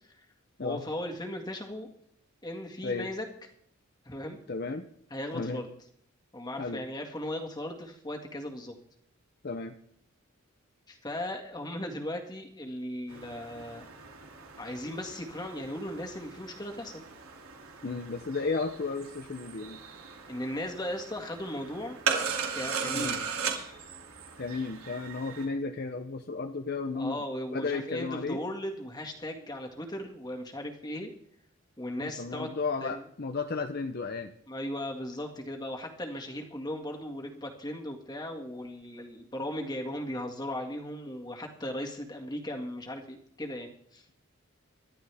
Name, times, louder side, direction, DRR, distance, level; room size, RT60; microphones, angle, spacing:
voice 1, 0.6-1.9 2.4-3.3 4.1-4.4 5.1-5.7 6.3-8.7 10.9-13.9 14.6-17.1 20.3-22.0 22.5-23.3 26.9-31.1 31.8-32.5 32.8-33.0 34.5-44.0, left 1 dB, 20° left, 2 dB, 1.9 m, -37 dB
voice 2, 4.5-4.9 5.3-5.6 6.6-6.8 9.4-9.7 17.8-19.8 22.9-23.2 24.4-27.2 27.5-28.4 32.0-34.3, left 4 dB, 45° left, 6 dB, 0.7 m, -33 dB
sound 1, 13.1-25.5, right 5 dB, 85° right, 2.7 m, -38 dB
24.5 x 12.0 x 3.5 m, 0.68 s
head